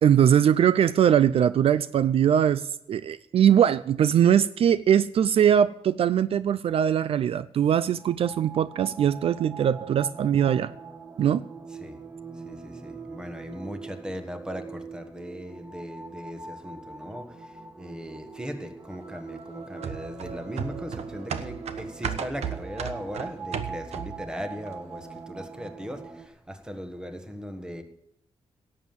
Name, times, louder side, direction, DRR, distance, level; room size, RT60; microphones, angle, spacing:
voice 1, 0.0-10.7 11.2-11.4, right 9 dB, 65° right, 0.4 m, -21 dB
sound 1, 7.9-26.3, right 4 dB, 25° right, 1.2 m, -42 dB
voice 2, 12.3-27.8, equal, 5° right, 1.4 m, -38 dB
sound 2, 19.8-24.3 24.7-24.8, right 7 dB, 90° right, 1.2 m, -34 dB
17.5 x 7.7 x 7.1 m
wide cardioid pair, 155°, 11 cm